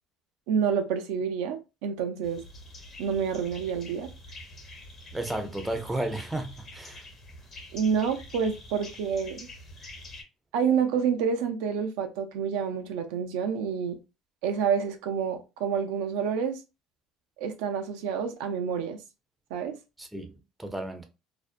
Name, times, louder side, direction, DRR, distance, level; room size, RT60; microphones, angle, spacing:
voice 1, 0.5-2.4 3.0-4.1 7.7-9.4 10.5-14.0 14.4-16.6 17.4-19.0 19.5-19.7, right 7 dB, 85° right, 0.4 m, -28 dB
sound 1, 2.2-10.2, left 1 dB, 40° left, 1.0 m, -46 dB
voice 2, 5.1-7.0 20.0-21.0, right 1 dB, 10° right, 0.5 m, -33 dB
2.5 x 2.1 x 2.4 m
supercardioid pair, 100°, 0 cm